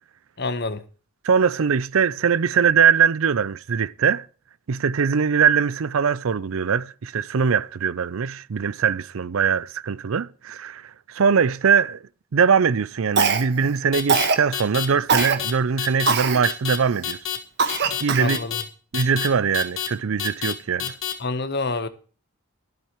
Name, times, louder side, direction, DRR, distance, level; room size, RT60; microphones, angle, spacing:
voice 1, 0.4-0.8 18.2-18.6 21.2-21.9, left 3 dB, 50° left, 1.1 m, -27 dB
voice 2, 1.2-4.3 4.7-12.0 12.3-17.2 18.0-18.4 18.9-21.0, right 6 dB, 75° right, 0.5 m, -21 dB
Cough, 13.2-13.7 14.1-14.4 15.1-15.4 16.1-16.4 16.9-17.0 17.6-18.4, right 5 dB, 50° right, 1.5 m, -21 dB
sound 1, 13.9-14.3 14.5-14.9 15.2-15.5 15.8-16.1 16.4-16.8 17.0-17.4 17.7-18.0 18.3-18.6 18.9-19.3 19.5-19.9 20.2-20.5 20.8-21.1, left 10 dB, 70° left, 1.8 m, -27 dB
13.5 x 12.0 x 3.1 m
head